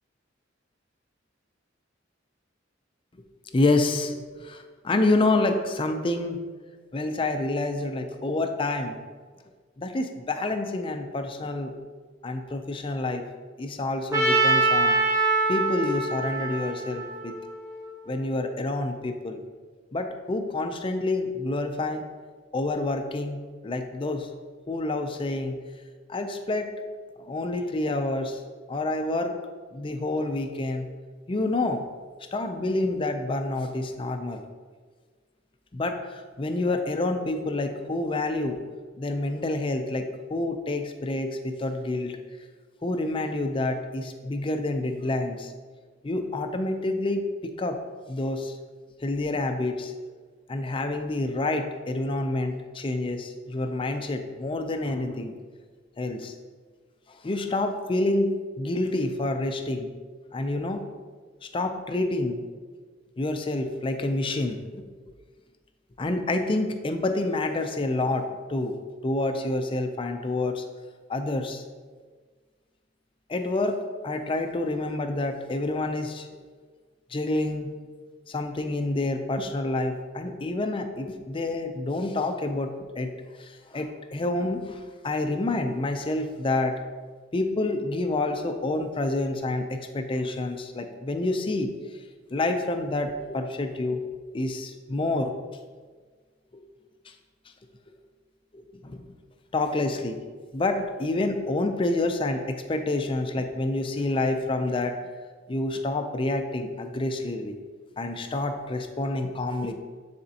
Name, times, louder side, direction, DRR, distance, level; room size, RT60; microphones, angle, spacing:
voice 1, 3.5-6.4 6.9-9.0 9.8-11.7 12.2-13.3 13.6-15.0 15.5-17.4 18.1-19.4 19.9-22.0 22.5-24.3 24.7-25.6 26.1-26.7 27.2-28.4 28.7-29.3 29.7-30.9 31.3-31.9 32.3-34.4 35.7-38.6 39.0-42.2 42.8-45.5 46.0-47.8 48.1-48.6 49.0-49.9 50.5-55.3 56.0-56.3 57.1-59.9 60.3-60.8 61.5-62.4 63.2-64.9 66.0-68.8 69.0-70.6 71.1-71.6 73.3-73.8 74.0-76.3 77.1-77.8 78.3-83.1 83.4-86.8 87.3-91.7 92.3-94.0 94.3-95.3 97.1-97.2 98.5-99.0 99.5-100.2 100.5-105.0 105.5-107.6 108.0-109.7, left 2 dB, 25° left, 6 dB, 0.5 m, -28 dB
Trumpet, 14.1-18.2, right 3 dB, 15° right, 0.8 m, -24 dB
9.2 x 4.2 x 2.8 m, 1.5 s
head